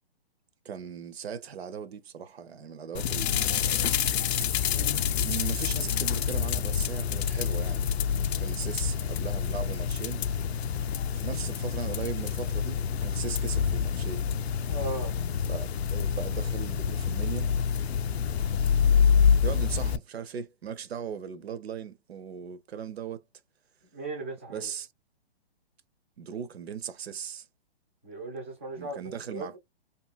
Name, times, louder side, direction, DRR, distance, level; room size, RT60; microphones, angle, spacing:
voice 1, 0.6-4.0 5.1-7.9 8.4-10.2 11.1-14.3 15.5-17.5 18.5-19.1 19.4-23.2 24.5-24.9 26.2-27.5 28.8-29.6, right 7 dB, 70° right, 0.7 m, -38 dB
sound 1, 2.9-20.0, left 7 dB, 75° left, 0.5 m, -27 dB
voice 2, 14.7-15.2 23.9-24.7 28.0-29.0 29.3-29.6, right 2 dB, 15° right, 0.4 m, -37 dB
2.9 x 2.7 x 2.2 m
hypercardioid pair, 160°, 32 cm